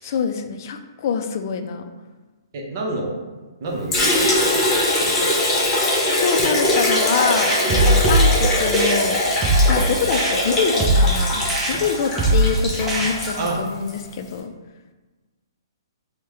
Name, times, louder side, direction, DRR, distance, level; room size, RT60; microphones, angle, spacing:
voice 1, 0.0-1.9 6.1-9.2 9.7-14.5, left 6 dB, 50° left, 6 dB, 0.4 m, -25 dB
voice 2, 2.5-3.2 3.6-4.7 5.0-5.2 13.4-13.6, right 2 dB, 50° right, 0 dB, 0.7 m, -28 dB
Liquid, 3.9-14.0, left 1 dB, 20° left, 0.9 m, -21 dB
sound 1, 7.4-13.5, right 1 dB, 15° right, 0.6 m, -21 dB
4.4 x 2.2 x 3.0 m, 1.3 s
hypercardioid pair, 135°, 2 cm